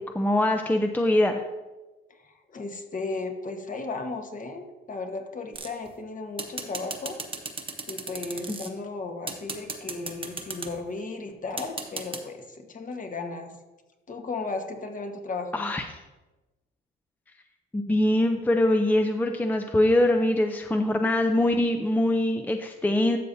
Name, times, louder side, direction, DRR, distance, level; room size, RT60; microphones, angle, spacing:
voice 1, 0.0-1.4 15.5-15.8 17.7-23.2, left 1 dB, 10° left, 5 dB, 0.5 m, -23 dB
voice 2, 2.1-7.2 7.9-13.5 14.1-15.6, left 3 dB, 40° left, 4 dB, 1.3 m, -35 dB
sound 1, 5.5-5.9 6.4-8.7 9.3-10.7 11.6-12.2, right 4 dB, 25° right, 1.1 m, -35 dB
12.5 x 6.7 x 2.7 m, 1.1 s
cardioid pair, 90°, 20 cm